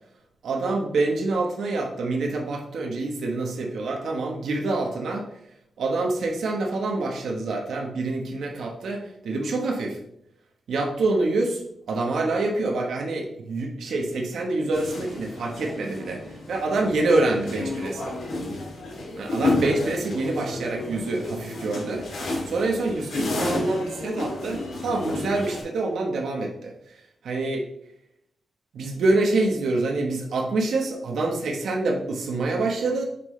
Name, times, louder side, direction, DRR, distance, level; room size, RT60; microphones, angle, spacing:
voice 1, 0.4-5.3 5.8-10.0 10.7-18.2 19.1-27.6 28.7-33.0, right 2 dB, 85° right, 1 dB, 1.3 m, -26 dB
sound 1, 14.7-25.6, left 2 dB, 85° left, 3.0 m, -31 dB
8.2 x 5.8 x 3.3 m, 0.75 s
wide cardioid pair, 135°, 0 cm